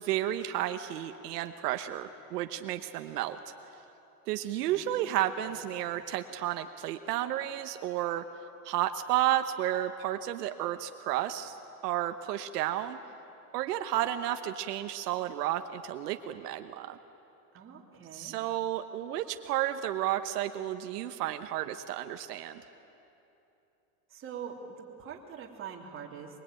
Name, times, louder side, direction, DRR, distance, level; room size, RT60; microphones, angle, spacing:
voice 1, 0.0-3.4 4.3-8.2 8.6-11.6 11.8-13.0 13.5-17.0 18.1-22.6, right 13 dB, 85° right, 7 dB, 1.2 m, -32 dB
voice 2, 4.7-6.0 17.5-18.4 24.1-26.4, right 7 dB, 25° right, 0 dB, 3.2 m, -45 dB
23.5 x 23.0 x 9.2 m, 2.9 s
supercardioid pair, 145°, 47 cm